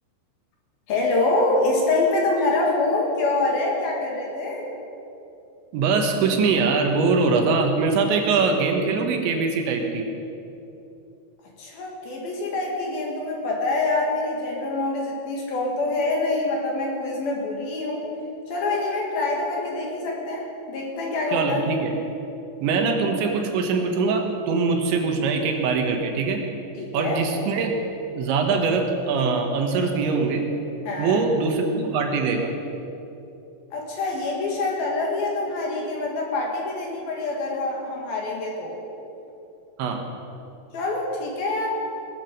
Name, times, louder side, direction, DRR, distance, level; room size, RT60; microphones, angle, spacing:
voice 1, 0.9-4.7 11.6-18.0 18.5-21.6 26.8-27.2 30.9-31.2 33.7-38.8 40.7-41.7, left 2 dB, 55° left, -2 dB, 3.5 m, -25 dB
voice 2, 5.7-10.1 21.3-21.9 22.6-26.4 26.9-27.7 28.2-30.4 31.0-32.5 39.8-40.0, right 4 dB, 75° right, 3 dB, 3.5 m, -22 dB
20.0 x 13.5 x 5.3 m, 2.8 s
omnidirectional pair, 5.6 m